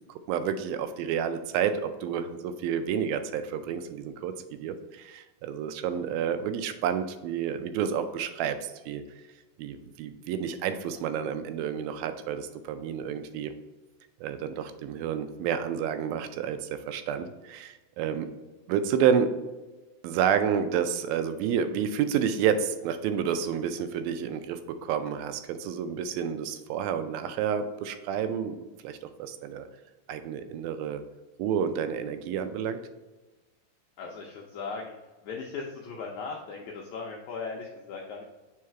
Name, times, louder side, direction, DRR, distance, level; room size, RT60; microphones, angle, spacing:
voice 1, 0.3-4.3 4.6-9.0 9.6-13.5 14.2-18.3 18.7-19.3 20.0-28.6 28.8-29.7 30.1-31.0 31.4-32.8, right 8 dB, 85° right, 9 dB, 2.4 m, -29 dB
voice 2, 34.0-34.9 35.2-38.2, left 4 dB, 80° left, -1 dB, 1.7 m, -38 dB
4.9 x 4.7 x 4.3 m, 1.2 s
omnidirectional pair, 4.2 m